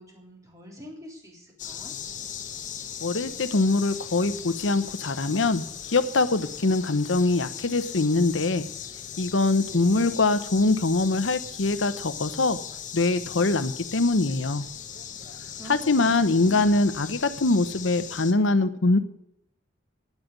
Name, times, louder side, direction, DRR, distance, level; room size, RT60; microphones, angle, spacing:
voice 1, 0.0-1.9 9.3-10.4 15.5-16.9, equal, 20° right, -1 dB, 3.6 m, -45 dB
sound 1, 1.6-18.3, left 8 dB, 40° left, 1.0 m, -38 dB
voice 2, 3.0-8.7 9.2-12.6 12.9-14.6 15.7-19.0, left 3 dB, 80° left, 12 dB, 0.9 m, -23 dB
9.7 x 9.1 x 9.5 m, 0.75 s
head